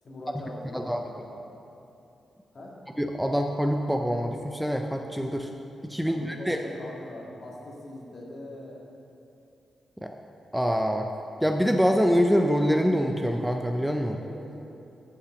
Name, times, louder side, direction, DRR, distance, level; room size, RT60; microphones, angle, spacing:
voice 1, 0.0-1.4 2.5-2.8 6.1-8.8 14.2-14.5, left 1 dB, 50° left, -2 dB, 1.8 m, -42 dB
voice 2, 3.0-5.5 5.8-6.6 10.0-10.1 10.5-11.1 11.4-14.2, equal, ahead, 3 dB, 0.4 m, -25 dB
8.2 x 5.7 x 6.9 m, 2.9 s
cardioid pair, 110°, 0 cm